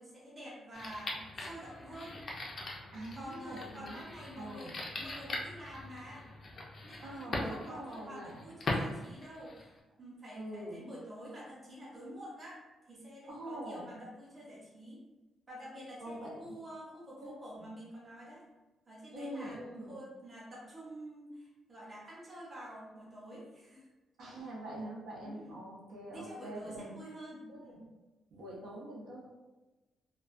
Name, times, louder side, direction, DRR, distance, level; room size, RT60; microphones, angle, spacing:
voice 1, 0.0-2.2 3.1-6.3 6.8-9.7 10.0-12.6 12.9-15.0 15.5-18.4 18.9-19.6 19.9-23.9 25.2-25.6 26.1-27.8, equal, 20° right, -7 dB, 0.8 m, -48 dB
sound 1, 0.7-9.8, left 2 dB, 35° left, 0.4 m, -41 dB
voice 2, 2.9-4.0 4.4-4.7 7.0-8.4 10.3-10.8 13.3-13.9 16.0-16.6 17.2-17.7 19.1-20.0 24.2-26.9 27.5-27.8 28.3-29.3, right 1 dB, 80° right, -4 dB, 0.7 m, -44 dB
2.3 x 2.2 x 2.4 m, 1.1 s
cardioid pair, 155°, 0 cm